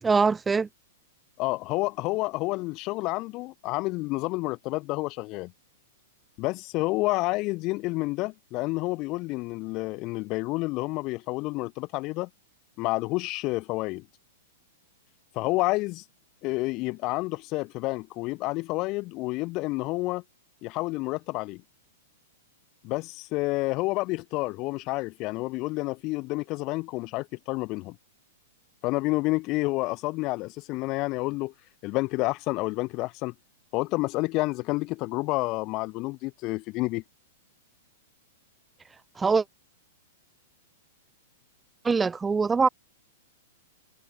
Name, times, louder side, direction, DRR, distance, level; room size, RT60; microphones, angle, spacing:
voice 1, 0.0-0.7 39.2-39.4 41.8-42.7, right 5 dB, 10° right, 4.1 m, -23 dB
voice 2, 1.4-5.5 6.4-12.3 12.8-14.0 15.3-16.0 16.4-20.2 20.6-21.6 22.8-28.0 28.8-31.5 31.8-33.3 33.7-37.0, left 22 dB, 40° left, 5.5 m, -29 dB
hypercardioid pair, 130°, 0 cm